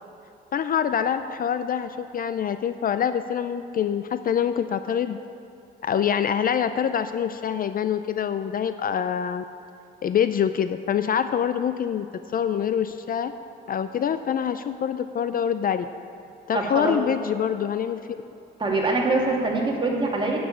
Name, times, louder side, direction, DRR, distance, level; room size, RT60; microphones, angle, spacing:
voice 1, 0.5-5.2 5.8-9.4 10.0-12.1 12.3-13.3 13.7-15.9 16.5-18.0, left 8 dB, 45° left, 11 dB, 0.4 m, -25 dB
voice 2, 16.5-16.9 18.6-20.4, right 2 dB, 25° right, -2 dB, 2.3 m, -24 dB
8.3 x 7.1 x 8.7 m, 2.7 s
cardioid pair, 90°, 20 cm